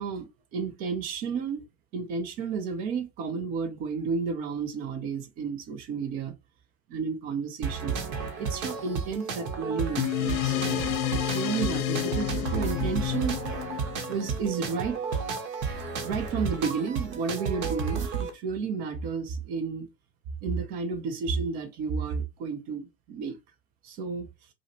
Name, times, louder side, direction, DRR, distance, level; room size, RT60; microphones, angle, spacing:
voice 1, 0.0-1.6 1.9-6.3 6.9-8.0 8.4-13.4 14.1-15.2 16.0-19.9 20.4-23.4 23.8-24.3, right 5 dB, 20° right, 0.4 m, -32 dB
sound 1, 7.6-18.3, right 5 dB, 45° right, 1.0 m, -32 dB
sound 2, 10.0-14.8, left 17 dB, 60° left, 0.5 m, -30 dB
4.7 x 2.0 x 2.7 m
figure-of-eight pair, 80°, 48 cm